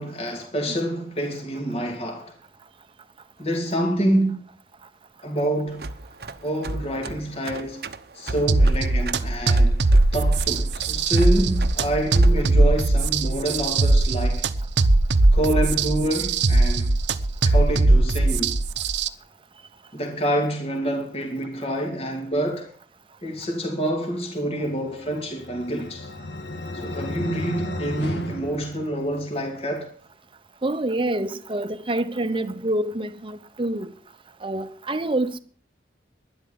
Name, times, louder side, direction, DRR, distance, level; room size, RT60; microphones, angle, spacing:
voice 1, 0.0-2.3 3.4-4.4 5.2-5.9 6.4-7.8 8.1-9.7 10.1-14.4 15.3-16.9 17.4-18.6 19.9-22.7 23.2-26.1 26.8-29.9, right 1 dB, 35° left, 2.7 m, -27 dB
sound 1, 5.7-12.5, right 2 dB, 60° right, 0.9 m, -34 dB
sound 2, 8.5-19.1, right 2 dB, 90° right, 0.9 m, -20 dB
sound 3, 24.9-29.4, left 2 dB, 80° left, 1.6 m, -34 dB
voice 2, 30.6-33.9 34.4-35.4, right 1 dB, 30° right, 0.9 m, -26 dB
12.0 x 10.5 x 7.0 m
head